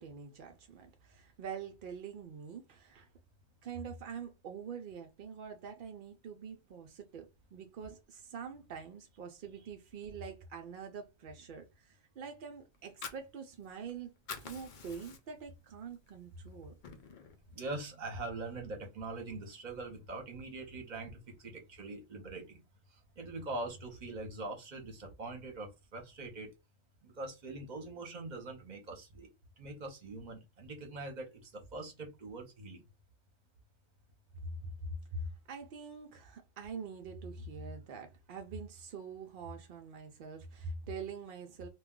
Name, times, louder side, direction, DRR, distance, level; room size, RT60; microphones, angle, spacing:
voice 1, 0.0-3.1 3.6-14.1 14.4-16.7 34.4-41.7, right 4 dB, 75° right, 0.4 m, -45 dB
Fire, 12.7-13.9 14.2-15.5 15.9-16.1 16.5-17.4, left 5 dB, 65° left, 0.5 m, -46 dB
voice 2, 17.5-22.6 23.2-26.5 27.0-29.3 29.6-32.8, right 2 dB, 40° right, 0.7 m, -43 dB
2.3 x 2.2 x 3.6 m
omnidirectional pair, 1.4 m